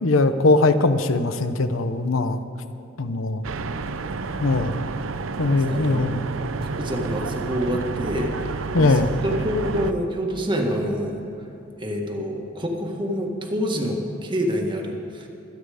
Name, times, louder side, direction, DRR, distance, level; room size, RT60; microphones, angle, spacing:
voice 1, 0.0-2.4 3.0-3.5 4.4-4.8 5.4-6.2 8.7-9.1, left 2 dB, 85° left, 10 dB, 0.9 m, -20 dB
sound 1, 3.4-9.9, right 4 dB, 90° right, 0.7 m, -30 dB
voice 2, 5.4-6.1 6.8-11.2 11.8-15.3, equal, 25° right, 1 dB, 1.6 m, -27 dB
25.5 x 9.3 x 5.0 m, 2.9 s
head